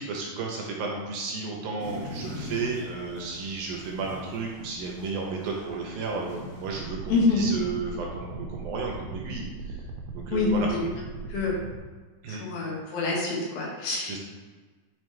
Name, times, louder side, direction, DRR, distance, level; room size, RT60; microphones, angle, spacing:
voice 1, 0.0-9.8 10.1-10.7 12.2-12.4 14.1-14.2, right 4 dB, 75° right, -1 dB, 2.5 m, -33 dB
sound 1, 1.8-6.8, left 1 dB, 35° left, 1.8 m, -42 dB
sound 2, 6.7-11.8, right 4 dB, 90° right, 3.1 m, -39 dB
voice 2, 7.1-7.4 10.3-10.9 11.3-11.6 12.3-14.2, left 3 dB, 70° left, -4 dB, 3.1 m, -26 dB
9.2 x 5.1 x 3.3 m, 1.4 s
omnidirectional pair, 4.7 m